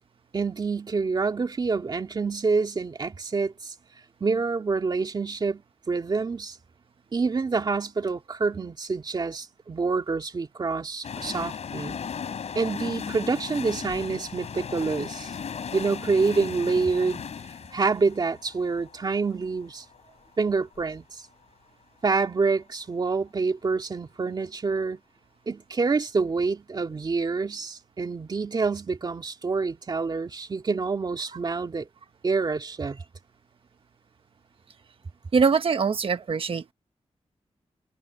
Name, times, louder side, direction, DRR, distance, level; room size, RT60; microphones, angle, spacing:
voice 1, 0.3-3.7 4.2-5.6 5.9-6.6 7.1-12.0 12.6-15.3 15.7-17.2 17.7-19.8 20.4-21.2 22.0-25.0 25.5-31.9 32.2-33.0, right 4 dB, 40° right, 2.4 m, -27 dB
sound 1, 11.0-20.8 21.1-21.2, left 7 dB, 80° left, 4.0 m, -37 dB
voice 2, 35.3-36.7, right 5 dB, 55° right, 1.3 m, -23 dB
wide cardioid pair, 165°, 11 cm